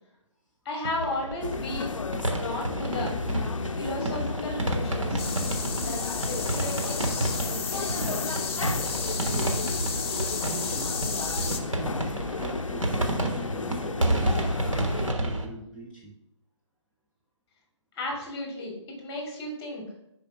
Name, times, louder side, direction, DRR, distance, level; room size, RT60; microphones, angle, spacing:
voice 1, 0.6-1.9 2.3-3.2 3.7-5.3 5.8-8.3 17.9-19.8, left 1 dB, 25° left, -1 dB, 2.9 m, -35 dB
sound 1, 0.8-15.5, right 1 dB, 90° right, 1.5 m, -30 dB
sound 2, 1.4-15.1, left 4 dB, 80° left, 0.5 m, -34 dB
sound 3, 5.2-11.6, left 5 dB, 50° left, 1.0 m, -33 dB
voice 2, 10.4-10.9 11.5-14.4 15.1-16.1, right 1 dB, 5° right, -6 dB, 0.8 m, -41 dB
5.1 x 5.0 x 5.7 m, 0.81 s
figure-of-eight pair, 140°, 16 cm